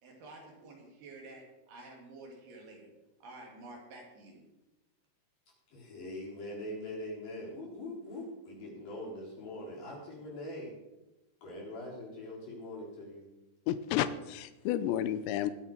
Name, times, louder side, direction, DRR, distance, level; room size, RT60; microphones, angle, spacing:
voice 1, 0.0-2.9 3.2-4.4, right 2 dB, 55° right, -1 dB, 4.4 m, -50 dB
voice 2, 5.7-10.8 11.4-13.3, left 1 dB, 45° left, -4 dB, 5.5 m, -42 dB
voice 3, 13.7-15.5, left 11 dB, 80° left, 12 dB, 2.6 m, -31 dB
22.5 x 8.0 x 4.6 m, 1.0 s
omnidirectional pair, 5.9 m